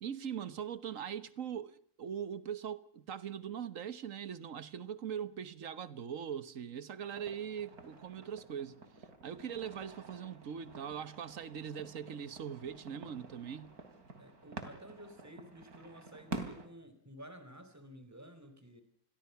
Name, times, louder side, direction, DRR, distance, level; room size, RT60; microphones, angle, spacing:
voice 1, 0.0-8.8 9.2-13.7, right 8 dB, 60° right, 1.6 m, -41 dB
sound 1, 7.0-16.7, right 2 dB, 80° right, 3.7 m, -49 dB
voice 2, 14.2-18.8, equal, 10° right, 4.2 m, -52 dB
29.5 x 22.5 x 5.8 m
omnidirectional pair, 1.6 m